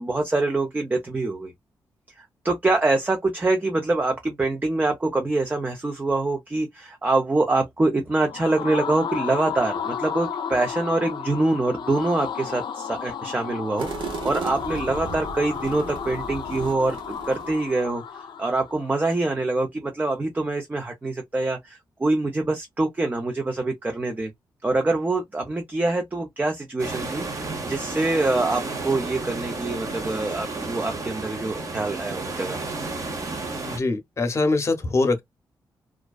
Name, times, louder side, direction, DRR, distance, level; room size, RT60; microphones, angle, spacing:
voice 1, 0.0-1.5 2.2-24.3 24.6-32.6, right 2 dB, 20° right, 0.5 m, -25 dB
sound 1, 8.1-19.0, left 7 dB, 65° left, 0.4 m, -33 dB
sound 2, 13.8-17.8, right 5 dB, 80° right, 0.8 m, -36 dB
sound 3, 26.8-33.8, right 3 dB, 40° right, 0.9 m, -32 dB
voice 2, 33.6-35.2, left 3 dB, 35° left, 0.8 m, -23 dB
2.4 x 2.2 x 2.3 m
cardioid pair, 75°, 8 cm